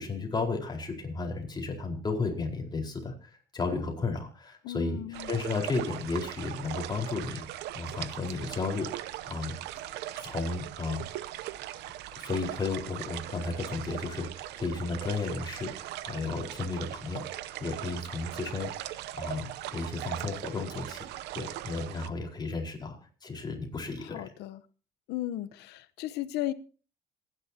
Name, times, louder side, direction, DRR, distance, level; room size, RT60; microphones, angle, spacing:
voice 1, 0.0-5.0 5.3-9.6 10.1-11.1 12.1-21.0 21.3-23.0 23.2-24.3, left 3 dB, 25° left, 1 dB, 4.5 m, -34 dB
voice 2, 4.6-5.4 24.0-24.6 25.1-26.5, left 14 dB, 85° left, 14 dB, 0.9 m, -35 dB
sound 1, 5.1-22.1, right 14 dB, 85° right, 0.8 m, -40 dB
26.5 x 10.5 x 2.9 m, 0.37 s
cardioid pair, 110°, 17 cm